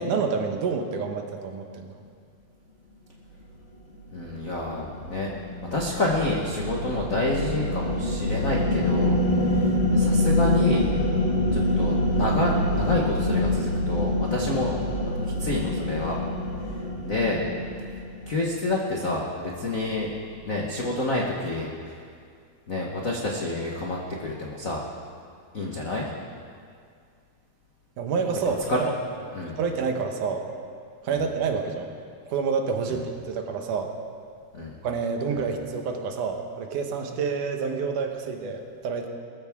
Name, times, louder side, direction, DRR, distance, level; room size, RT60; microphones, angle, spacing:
voice 1, 0.0-2.0 28.0-28.9 29.6-30.4 31.0-31.9 32.3-33.9 34.8-39.1, right 5 dB, 75° right, 4 dB, 2.6 m, -28 dB
sound 1, 4.0-18.5, left 1 dB, 30° left, 1.2 m, -26 dB
voice 2, 4.1-5.3 5.7-10.9 11.5-14.7 15.4-16.2 17.0-17.4 18.3-20.1 20.4-22.0 22.7-24.8 25.5-26.1 28.7-28.9 29.3-29.6 31.1-31.2 32.9-33.0 34.5-34.8 35.3-35.4, left 2 dB, 70° left, -2 dB, 0.7 m, -28 dB
21.5 x 14.5 x 3.6 m, 2.2 s
omnidirectional pair, 3.6 m